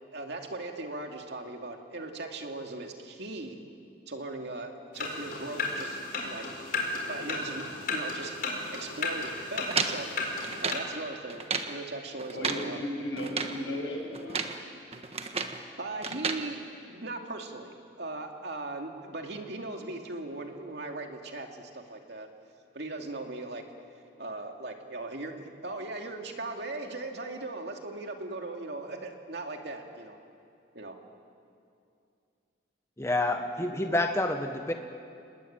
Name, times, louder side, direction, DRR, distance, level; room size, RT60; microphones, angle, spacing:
voice 1, 0.1-3.6 4.1-6.4 7.1-8.3 8.7-10.1 10.6-11.4 11.7-12.8 15.8-22.3 22.7-23.6 24.2-30.2 30.7-31.0, right 2 dB, 60° right, 3 dB, 2.6 m, -39 dB
sound 1, 4.9-10.7, left 3 dB, 50° left, 4.8 m, -34 dB
sound 2, 9.7-10.9 11.3-11.8 12.2-12.7 13.2-13.6 14.1-14.6 14.9-15.6 16.0-16.4, right 5 dB, 35° right, 1.5 m, -32 dB
voice 2, 12.3-14.6, left 1 dB, 90° left, 0 dB, 7.8 m, -35 dB
voice 3, 33.0-34.7, left 2 dB, 15° left, 5 dB, 1.2 m, -28 dB
30.0 x 20.5 x 8.9 m, 2.5 s
head